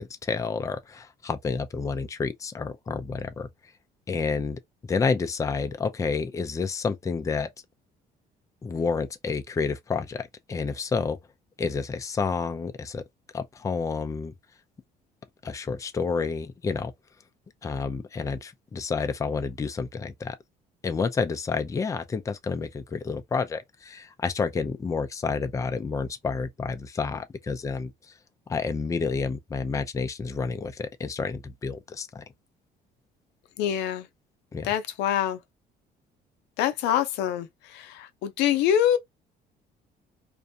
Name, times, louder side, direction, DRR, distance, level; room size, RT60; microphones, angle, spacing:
voice 1, 0.0-3.5 4.1-7.5 8.6-11.2 11.6-13.0 13.3-14.3 15.4-16.9 17.6-20.3 20.8-27.9 28.5-32.2 34.5-34.7, left 5 dB, 20° left, 0.4 m, -29 dB
voice 2, 33.6-34.1 34.6-35.4 36.6-39.0, left 10 dB, 90° left, 0.5 m, -25 dB
2.5 x 2.2 x 2.6 m
cardioid pair, 110°, 17 cm